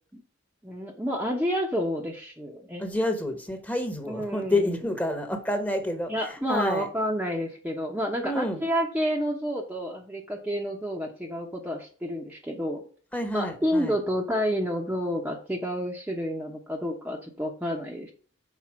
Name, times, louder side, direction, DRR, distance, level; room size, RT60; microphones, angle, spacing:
voice 1, 0.6-2.9 4.1-4.7 6.1-12.8 13.3-18.1, equal, 10° right, 0.9 m, -29 dB
voice 2, 2.8-6.9 8.2-8.6 13.1-13.9, left 1 dB, 10° left, 1.2 m, -29 dB
5.9 x 4.1 x 6.1 m
head